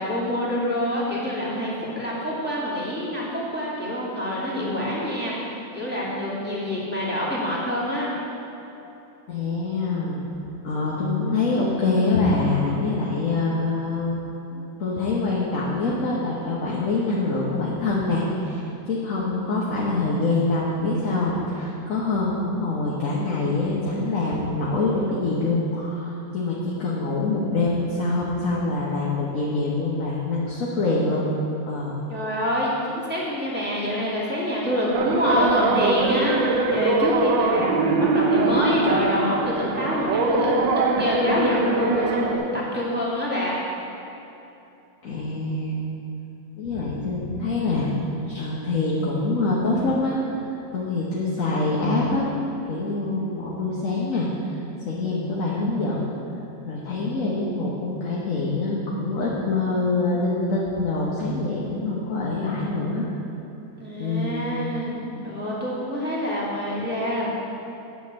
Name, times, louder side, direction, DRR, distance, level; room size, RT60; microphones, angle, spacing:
voice 1, 0.0-8.1 32.1-40.5 41.0-43.6 63.8-67.3, left 1 dB, 5° right, -6 dB, 2.2 m, -26 dB
voice 2, 9.3-10.2 10.6-14.2 14.5-31.3 31.7-32.0 45.0-45.8 46.5-47.9 48.3-50.5 50.7-52.3 52.7-56.1 56.6-63.1 64.0-64.5, left 3 dB, 50° left, -5 dB, 1.3 m, -25 dB
sound 1, 34.9-42.4, right 3 dB, 70° right, 1.4 m, -22 dB
9.5 x 6.1 x 7.3 m, 2.9 s
omnidirectional pair, 2.2 m